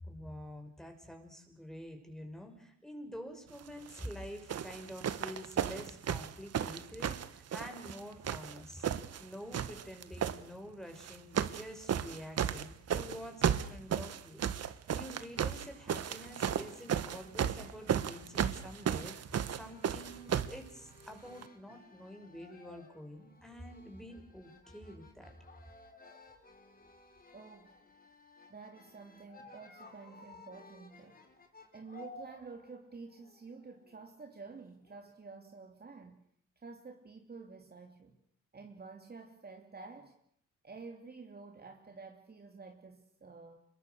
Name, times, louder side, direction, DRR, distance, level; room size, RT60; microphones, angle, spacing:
voice 1, 0.0-25.3, equal, ahead, 6.0 m, -48 dB
sound 1, 3.9-4.1 4.5-9.2 9.5-10.4 11.0-11.6 11.9-20.6 21.4-21.5, right 8 dB, 55° right, 1.6 m, -34 dB
sound 2, 15.6-35.2, left 3 dB, 30° left, 4.8 m, -58 dB
voice 2, 27.3-27.8 28.5-31.2 31.7-36.2 36.6-38.2 38.5-40.2 40.6-43.6, right 4 dB, 30° right, 3.2 m, -50 dB
26.5 x 22.5 x 6.6 m
cardioid pair, 90°, 30 cm